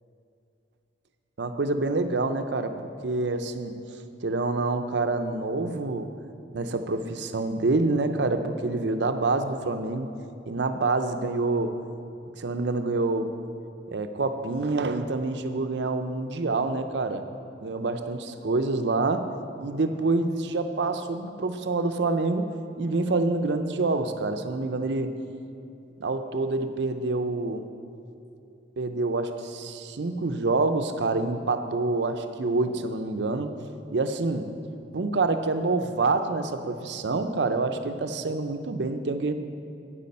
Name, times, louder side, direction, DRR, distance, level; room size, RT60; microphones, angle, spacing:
voice 1, 1.4-3.7 4.2-6.1 6.5-10.1 10.5-11.7 12.4-13.3 13.9-17.2 17.6-18.2 18.4-19.3 19.6-22.5 22.8-25.2 26.0-27.6 28.8-33.5 33.9-34.5 34.9-39.3, right 3 dB, 70° right, 8 dB, 0.6 m, -27 dB
8.9 x 8.4 x 5.4 m, 2.7 s
head